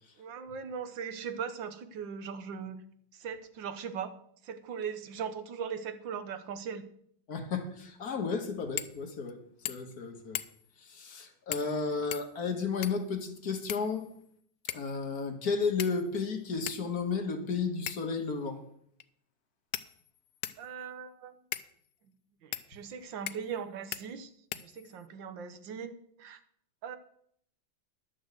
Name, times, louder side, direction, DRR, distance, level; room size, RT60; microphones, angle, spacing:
voice 1, 0.2-2.8 3.1-4.1 4.4-6.8 20.6-21.4 22.4-26.4 26.8-27.0, right 7 dB, 75° right, 10 dB, 1.6 m, -39 dB
voice 2, 7.3-9.4 9.7-10.4 10.8-14.1 14.7-18.6, left 5 dB, 55° left, 5 dB, 1.7 m, -33 dB
sound 1, 8.8-9.0 9.3-9.4 9.6-10.0 10.3-10.7 11.5-11.8 12.1-13.1 13.7-14.3 14.7-15.0 15.8-16.2 16.7-16.8 17.9-18.2 19.0-19.1 19.7-20.7 21.5-21.7 22.5-22.7 23.3-23.6 23.9-24.0 24.5-25.1, left 13 dB, 75° left, 1.1 m, -39 dB
11.0 x 6.2 x 7.9 m, 0.68 s
omnidirectional pair, 2.0 m